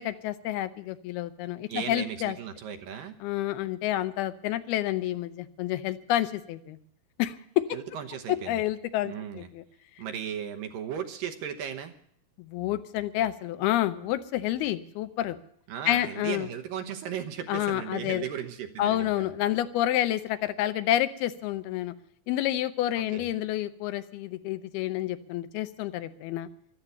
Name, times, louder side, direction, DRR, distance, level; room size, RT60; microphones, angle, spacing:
voice 1, 0.0-2.4 3.2-6.8 7.2-7.7 8.3-9.6 12.4-15.4 15.9-16.5 17.5-18.3 18.8-21.9 22.3-26.5, left 13 dB, 80° left, 12 dB, 2.7 m, -29 dB
voice 2, 1.7-3.2 7.7-8.6 9.0-9.5 10.0-11.9 15.7-19.4 23.0-23.3, right 8 dB, 70° right, 6 dB, 2.6 m, -36 dB
14.5 x 12.5 x 6.9 m, 0.67 s
omnidirectional pair, 4.5 m